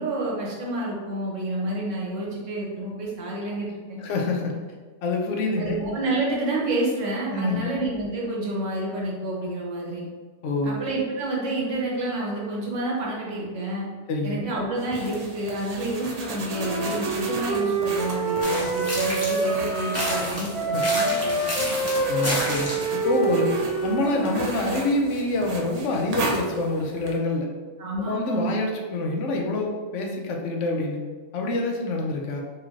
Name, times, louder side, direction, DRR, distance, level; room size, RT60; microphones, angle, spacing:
voice 1, 0.0-4.0 5.6-10.1 10.6-13.9 14.2-21.4 21.7-21.8 27.8-28.5, right 2 dB, 90° right, -4 dB, 1.2 m, -29 dB
voice 2, 4.0-4.6 5.0-5.8 7.3-7.7 10.4-10.8 14.1-14.5 20.6-20.8 22.1-23.5 23.8-27.5 28.0-31.0 31.3-32.4, left 2 dB, 85° left, 1 dB, 0.9 m, -26 dB
sound 1, 14.8-27.2, right 2 dB, 60° right, 0.4 m, -36 dB
Wind instrument woodwind instrument, 16.5-20.3 20.5-24.5, right 3 dB, 30° right, 1.1 m, -27 dB
sound 2, 18.4-19.6 19.9-22.9, equal, 15° left, 0.6 m, -30 dB
3.2 x 3.1 x 2.4 m, 1.5 s
omnidirectional pair, 1.2 m